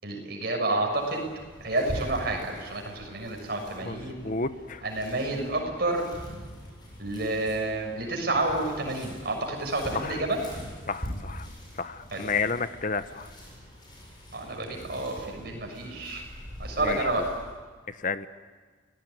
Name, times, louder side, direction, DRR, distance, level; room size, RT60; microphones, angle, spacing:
voice 1, 0.0-1.3 1.6-4.3 4.8-6.1 7.0-10.4 12.1-12.2 14.3-16.2 16.6-17.3, right 2 dB, 55° right, 1 dB, 6.8 m, -29 dB
sound 1, 0.9-17.5, equal, 25° left, 7.8 m, -43 dB
voice 2, 3.8-4.8 9.9-10.2 10.9-11.5 11.8-13.3 16.8-17.2 18.0-18.3, left 4 dB, 40° left, 12 dB, 1.0 m, -31 dB
29.5 x 18.5 x 9.6 m, 1.4 s
head